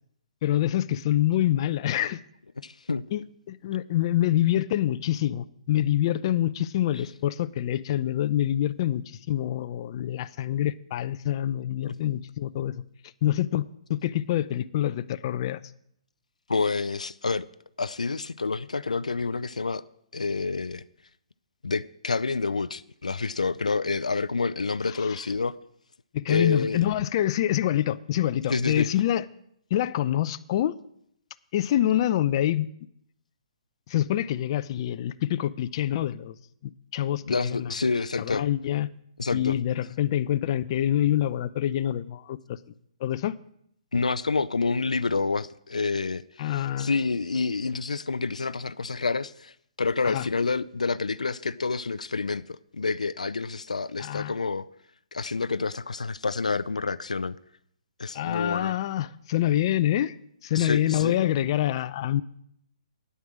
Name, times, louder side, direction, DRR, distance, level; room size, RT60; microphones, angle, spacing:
voice 1, 0.4-2.2 3.1-12.8 13.2-15.6 25.0-25.2 26.1-29.3 29.7-30.8 31.5-32.7 33.9-36.3 36.6-37.7 38.2-38.9 39.3-42.6 43.0-43.4 46.4-46.9 50.0-50.2 54.0-54.3 58.1-60.2 60.4-62.2, left 12 dB, 45° left, 0.6 m, -26 dB
voice 2, 2.6-3.0 16.5-17.5 17.8-19.8 20.1-20.8 21.6-25.6 26.3-26.8 28.5-28.9 37.2-38.4 39.2-39.6 43.9-54.7 55.1-57.4 58.0-58.8 60.5-61.2, left 4 dB, 90° left, 0.5 m, -28 dB
9.5 x 9.3 x 7.5 m
hypercardioid pair, 135°, 4 cm